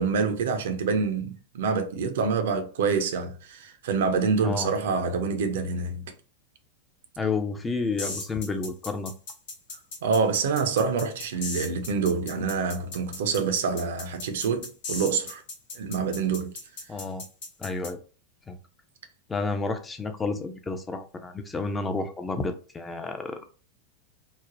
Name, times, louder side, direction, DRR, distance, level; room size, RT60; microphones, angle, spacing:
voice 1, 0.0-6.1 10.0-15.4 15.7-16.5, right 5 dB, 55° right, 0.4 m, -26 dB
voice 2, 7.2-9.1 16.9-17.2 17.6-18.0 18.5-18.6 19.3-23.4, left 3 dB, 15° left, 0.4 m, -30 dB
sound 1, 8.0-17.9, left 3 dB, 55° left, 0.8 m, -37 dB
3.2 x 2.1 x 2.5 m
figure-of-eight pair, 90°, 0 cm